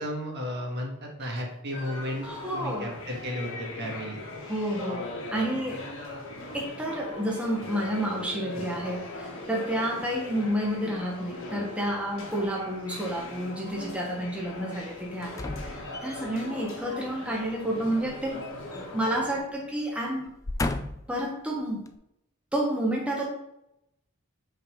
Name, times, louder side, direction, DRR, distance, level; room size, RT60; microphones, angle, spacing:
voice 1, 0.0-2.3 2.5-4.2, equal, 55° right, 0 dB, 1.5 m, -34 dB
sound 1, 1.7-19.4, left 2 dB, 70° left, 1.5 m, -40 dB
voice 2, 2.2-2.9 4.5-5.9 6.5-15.4 15.7-18.5 18.7-20.3 21.1-21.8 22.5-23.3, right 1 dB, 5° right, -1 dB, 1.0 m, -30 dB
sound 2, 15.3-16.5 18.0-19.2 19.5-19.7 20.2-21.2 21.9-22.0, left 2 dB, 15° left, 0.3 m, -34 dB
5.4 x 4.0 x 5.0 m, 0.84 s
head